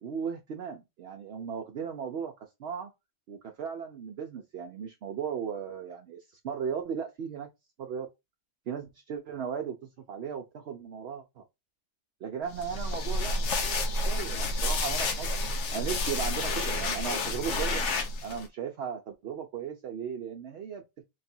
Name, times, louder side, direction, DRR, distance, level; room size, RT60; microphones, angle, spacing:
voice 1, 0.0-2.3 2.6-2.9 3.3-7.5 7.8-8.1 8.7-11.4 12.2-15.3 15.7-17.8 18.2-20.8, right 7 dB, 65° right, 0.8 m, -36 dB
sound 1, 12.5-18.5, left 2 dB, 80° left, 1.1 m, -30 dB
3.2 x 2.5 x 4.2 m
omnidirectional pair, 1.2 m